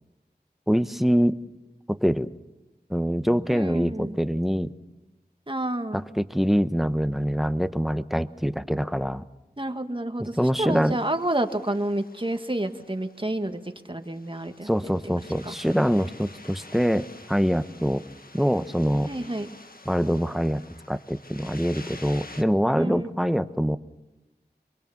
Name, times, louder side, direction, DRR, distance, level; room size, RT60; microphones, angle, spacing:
voice 1, 0.7-1.4 1.9-2.3 2.9-4.7 5.9-9.2 10.2-11.0 14.6-18.0 18.3-19.1 19.9-20.6 20.9-23.8, equal, ahead, 12 dB, 1.0 m, -24 dB
voice 2, 3.5-4.2 5.5-6.0 9.6-13.6 13.9-14.9 15.4-15.5 19.1-19.5 22.7-23.1, right 1 dB, 30° right, 7 dB, 1.8 m, -29 dB
sound 1, 10.7-22.4, left 2 dB, 60° left, 1.6 m, -48 dB
25.5 x 23.0 x 7.2 m, 1.0 s
wide cardioid pair, 45°, 17 cm